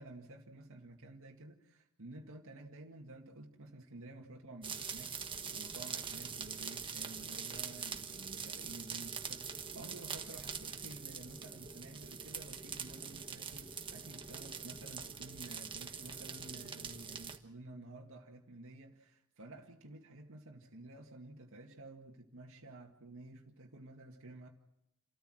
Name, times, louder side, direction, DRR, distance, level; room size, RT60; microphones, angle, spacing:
voice 1, 0.0-24.5, right 2 dB, 65° right, 2.1 m, -52 dB
sound 1, 4.6-17.4, right 6 dB, 25° right, 1.5 m, -44 dB
29.0 x 14.0 x 7.8 m
head